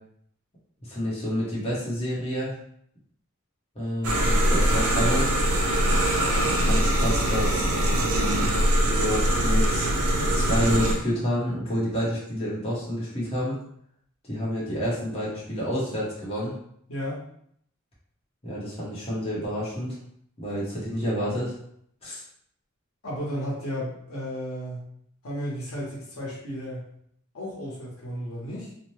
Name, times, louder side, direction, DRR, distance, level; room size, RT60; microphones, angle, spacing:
voice 1, 0.8-2.5 3.7-5.3 5.9-6.2 6.5-7.7 8.0-8.5 8.8-9.9 10.2-13.6 14.3-16.5 18.4-20.0 20.4-21.5 22.0-22.2, equal, 30° left, -7 dB, 0.8 m, -29 dB
sound 1, 4.0-11.0, right 1 dB, 85° right, 0.5 m, -22 dB
voice 2, 16.9-17.2 23.0-24.9 25.2-26.9 27.3-28.7, equal, 85° left, -4 dB, 1.0 m, -33 dB
2.7 x 2.1 x 3.1 m, 0.68 s
head